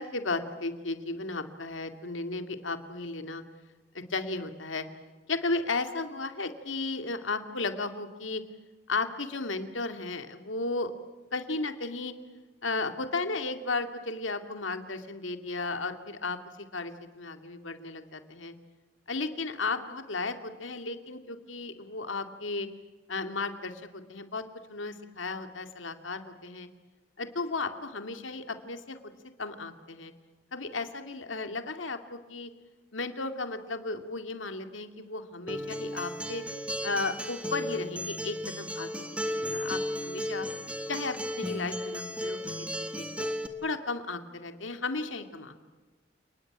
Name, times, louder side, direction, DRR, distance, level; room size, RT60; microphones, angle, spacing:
voice 1, 0.0-3.4 3.9-4.9 5.3-8.4 8.9-10.9 11.3-12.1 12.6-18.5 19.1-22.7 23.1-24.4 24.7-26.7 27.2-29.0 29.4-30.1 30.5-32.5 32.9-36.4 36.8-40.5 40.9-42.4 42.7-43.3 43.6-45.6, left 3 dB, 90° left, 8 dB, 2.3 m, -34 dB
Acoustic guitar, 35.5-43.5, equal, 5° right, 1.6 m, -35 dB
29.5 x 20.0 x 8.9 m, 1.3 s
head